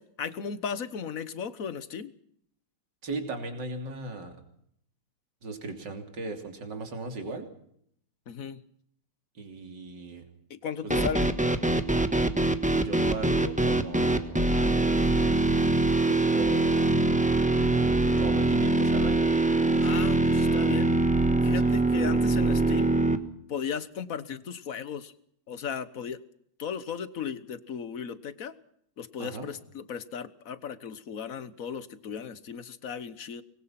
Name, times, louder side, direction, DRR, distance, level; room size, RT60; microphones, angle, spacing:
voice 1, 0.0-2.1 8.3-8.6 10.5-11.3 19.8-20.9 21.4-22.9 23.5-25.1 25.5-26.2 26.6-28.5 29.0-33.4, left 7 dB, 50° left, 15 dB, 1.5 m, -36 dB
voice 2, 3.0-4.4 5.4-7.5 9.4-10.3 10.8-11.1 12.7-14.5 16.0-17.2 18.2-19.4 19.8-20.3 21.6-21.8 29.2-29.5, right 3 dB, 70° right, 5 dB, 3.8 m, -38 dB
sound 1, 10.9-23.2, right 2 dB, 5° right, 1.2 m, -23 dB
25.0 x 21.5 x 6.0 m, 0.69 s
omnidirectional pair, 2.0 m